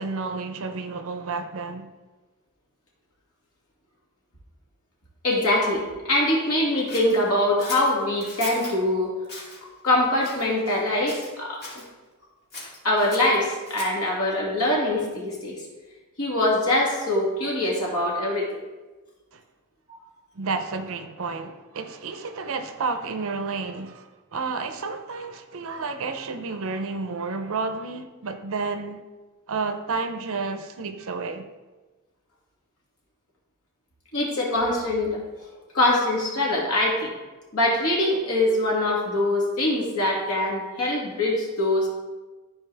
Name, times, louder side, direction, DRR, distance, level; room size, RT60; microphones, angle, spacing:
voice 1, 0.0-1.9 19.3-19.4 20.3-29.0 29.5-31.5, right 4 dB, 65° right, 0.6 m, -31 dB
voice 2, 5.2-9.1 9.8-11.6 12.8-15.6 16.2-18.6 19.9-20.0 34.1-35.2 35.7-37.1 37.5-41.9, left 1 dB, 75° left, 2.3 m, -23 dB
Scissors, 6.9-8.8 9.2-9.6 10.2-10.8 11.1-11.9 12.5-14.1, left 2 dB, 45° left, 2.4 m, -39 dB
13.5 x 4.6 x 3.4 m
head